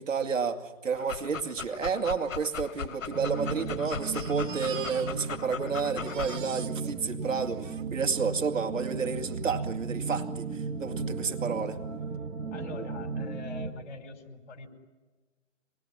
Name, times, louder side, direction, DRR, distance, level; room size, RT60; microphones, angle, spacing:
voice 1, 0.0-11.8, right 5 dB, 75° right, 4 dB, 2.5 m, -31 dB
Dog, 0.9-6.4, left 7 dB, 80° left, 0.8 m, -39 dB
Crying sobbing, 1.5-1.6 1.8-1.9 2.6-5.5 5.8-8.4 9.2-9.3 9.6-9.7, right 9 dB, 40° right, 2.0 m, -45 dB
sound 1, 3.1-13.7, right 4 dB, 15° right, 1.3 m, -35 dB
voice 2, 12.5-14.7, left 3 dB, 35° left, 4 dB, 5.0 m, -43 dB
27.0 x 20.0 x 10.0 m, 1.3 s
hypercardioid pair, 145°, 39 cm